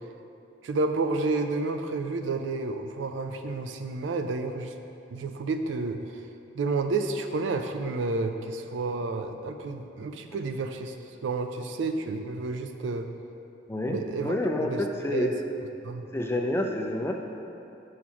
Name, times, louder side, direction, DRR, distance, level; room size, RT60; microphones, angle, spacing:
voice 1, 0.6-4.7 5.1-6.0 6.5-10.9 11.2-13.1 13.8-14.3 14.6-14.8 15.1-15.3 15.8-16.1, right 3 dB, 90° right, 6 dB, 0.4 m, -30 dB
voice 2, 13.7-15.3 16.1-17.1, left 1 dB, 15° left, 2 dB, 0.3 m, -28 dB
4.7 x 4.3 x 5.8 m, 2.7 s
head